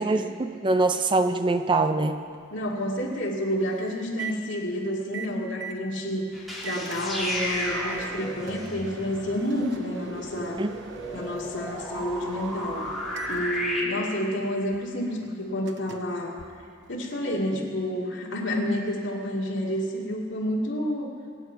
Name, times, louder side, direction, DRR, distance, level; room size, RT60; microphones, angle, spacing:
voice 1, 0.0-2.2 10.6-10.8, right 2 dB, 25° right, 9 dB, 0.5 m, -24 dB
Microwave oven, 1.5-17.2, right 4 dB, 60° right, 0.8 m, -43 dB
voice 2, 2.5-10.6 11.1-12.8 13.3-16.4 16.9-21.1, equal, 65° left, -2 dB, 2.3 m, -29 dB
sound 1, 6.3-13.8, left 1 dB, ahead, 2.3 m, -34 dB
24.0 x 8.6 x 4.6 m, 2.3 s
head